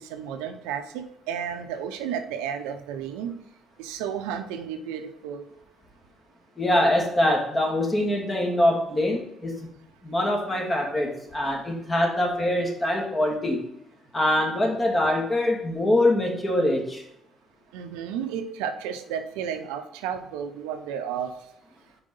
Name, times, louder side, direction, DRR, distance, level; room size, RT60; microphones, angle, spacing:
voice 1, 0.0-3.3 3.8-5.4 17.7-21.3, right 8 dB, 85° right, 7 dB, 0.6 m, -32 dB
voice 2, 6.6-9.5 10.0-13.6 14.1-17.0, left 1 dB, 25° left, 0 dB, 2.3 m, -24 dB
5.1 x 4.8 x 5.3 m, 0.78 s
supercardioid pair, 60°, 0 cm